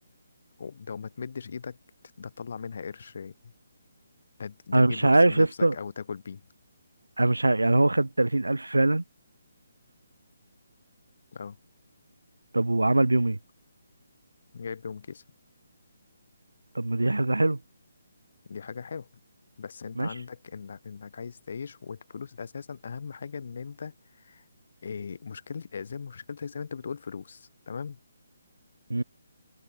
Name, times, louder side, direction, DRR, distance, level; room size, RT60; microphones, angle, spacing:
voice 1, 0.6-1.8 2.2-3.5 4.4-6.4 11.3-11.6 14.5-15.2 18.5-19.1 19.6-24.4 24.8-28.0, left 6 dB, 55° left, 1.3 m, -39 dB
voice 2, 4.7-5.7 7.2-9.0 12.5-13.4 16.7-17.6 20.0-20.1 28.9-29.0, right 2 dB, 90° right, 0.3 m, -22 dB
figure-of-eight pair, 150°, 0 cm